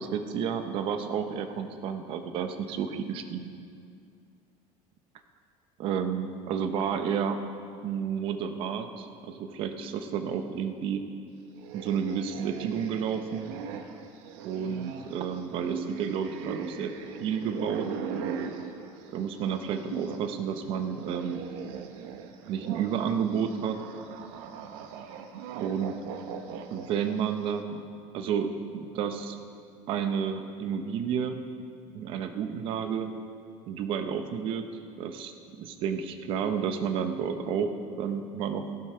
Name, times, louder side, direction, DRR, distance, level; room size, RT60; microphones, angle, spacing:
voice 1, 0.0-3.5 5.8-7.4 7.8-11.0 11.7-13.5 14.4-16.9 17.2-17.9 19.1-21.4 22.5-23.8 25.6-25.9 26.7-27.8 28.1-29.4 29.9-31.4 31.9-33.1 33.7-34.6 35.0-35.3 35.6-37.7 38.0-38.7, right 7 dB, 45° right, 7 dB, 0.8 m, -31 dB
sound 1, 11.5-20.3 20.6-27.4, right 7 dB, 90° right, 1.0 m, -39 dB
15.0 x 11.5 x 4.4 m, 2.4 s
cardioid pair, 175°, 13 cm